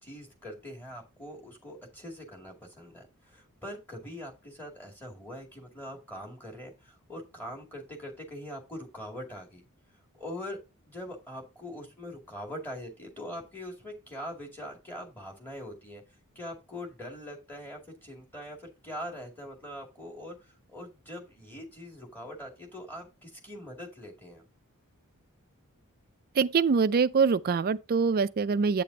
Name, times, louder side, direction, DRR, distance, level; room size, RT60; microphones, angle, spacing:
voice 1, 0.0-9.6 10.1-10.6 10.8-16.0 16.4-24.5, equal, 10° left, 2.2 m, -42 dB
voice 2, 26.3-28.8, right 5 dB, 40° right, 0.4 m, -24 dB
8.4 x 6.9 x 2.7 m
head